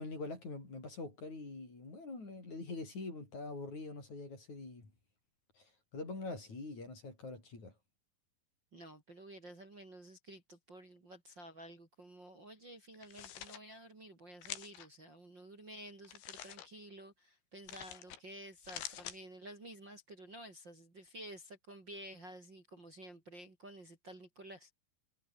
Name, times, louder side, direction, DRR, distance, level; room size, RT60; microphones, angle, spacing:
voice 1, 0.0-4.9 5.6-7.7, left 3 dB, 40° left, 8.7 m, -44 dB
voice 2, 8.7-24.7, right 1 dB, 25° right, 4.5 m, -52 dB
sound 1, 12.9-13.6 14.4-14.9 16.0-16.7 17.7-18.2 18.5-19.2, left 10 dB, 85° left, 4.7 m, -46 dB
omnidirectional pair, 5.2 m